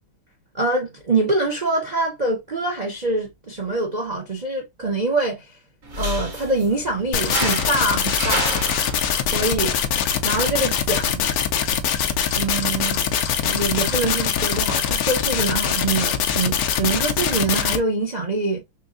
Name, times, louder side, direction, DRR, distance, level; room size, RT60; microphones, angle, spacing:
voice 1, 0.5-5.5 6.0-8.6 9.2-9.7 10.2-11.2 12.3-13.0 13.4-18.6, right 2 dB, 70° right, 0.4 m, -24 dB
sound 1, 5.8-12.8, right 1 dB, 45° right, 2.5 m, -32 dB
sound 2, 7.1-17.8, left 8 dB, 80° left, 0.8 m, -23 dB
4.4 x 3.1 x 2.5 m
omnidirectional pair, 2.3 m